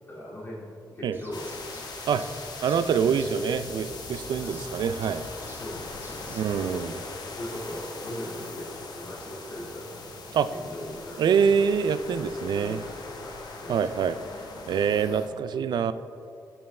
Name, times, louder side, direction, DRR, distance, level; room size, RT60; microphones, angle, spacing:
voice 1, 0.1-0.7 0.9-1.6 2.1-2.2 3.1-3.2 4.3-4.8 5.6-7.0 7.3-10.1 10.5-11.3 12.5-14.2, left 1 dB, 30° left, -7 dB, 2.3 m, -40 dB
Bird, 1.1-6.7, right 2 dB, 30° right, 1.2 m, -51 dB
sound 1, 1.3-15.3, left 3 dB, 65° left, 1.3 m, -40 dB
voice 2, 2.6-5.3 6.3-7.0 10.3-10.5 11.2-12.8 13.7-14.2 14.7-15.9, right 7 dB, 70° right, 13 dB, 0.4 m, -25 dB
15.0 x 5.5 x 3.3 m, 2.5 s
cardioid pair, 80°, 8 cm